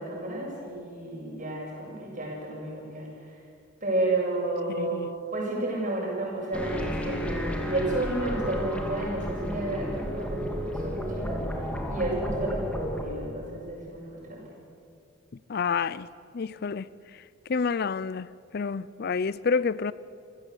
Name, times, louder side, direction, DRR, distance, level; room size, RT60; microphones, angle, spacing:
voice 1, 0.0-3.1 3.8-5.0 5.3-11.5 11.9-14.4, right 2 dB, 40° right, 7.7 m, -31 dB
voice 2, 4.8-5.1 15.5-16.1 16.3-16.9 17.5-19.9, left 5 dB, 50° left, 0.5 m, -28 dB
sound 1, 6.5-13.0, equal, 5° left, 2.8 m, -32 dB
27.0 x 17.0 x 8.4 m
head